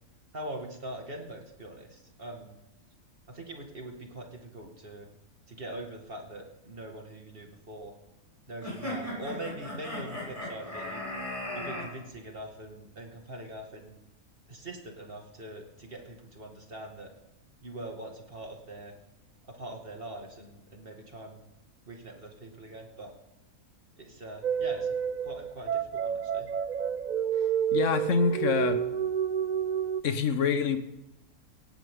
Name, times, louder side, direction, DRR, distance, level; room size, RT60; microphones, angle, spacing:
voice 1, 0.3-2.6 3.3-5.1 5.5-7.9 8.5-11.0 11.5-14.0 14.5-17.1 17.6-18.9 19.4-21.4 21.9-23.1 24.0-25.0 25.2-26.5, right 1 dB, 40° right, 2 dB, 2.5 m, -42 dB
sound 1, 8.6-11.9, left 1 dB, 25° left, 7.0 m, -37 dB
sound 2, 24.4-30.0, right 8 dB, 75° right, 0.4 m, -29 dB
voice 2, 27.7-28.8 30.0-30.8, left 6 dB, 60° left, 9 dB, 1.5 m, -26 dB
18.0 x 16.0 x 3.9 m, 0.95 s
omnidirectional pair, 1.5 m